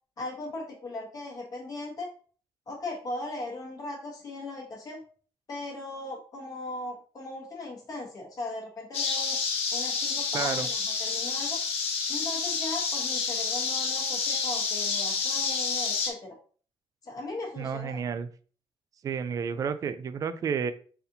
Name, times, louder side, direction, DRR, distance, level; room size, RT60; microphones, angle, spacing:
voice 1, 0.2-2.1 2.7-5.0 5.5-9.4 9.7-11.6 12.1-16.4 17.0-18.0, left 2 dB, 35° left, -1 dB, 1.1 m, -38 dB
sound 1, 8.9-16.1, left 5 dB, 80° left, 1.0 m, -29 dB
voice 2, 10.3-10.7 17.6-18.3 19.0-20.7, right 6 dB, 35° right, 12 dB, 0.3 m, -31 dB
4.1 x 4.0 x 2.6 m, 0.42 s
cardioid pair, 165°, 10 cm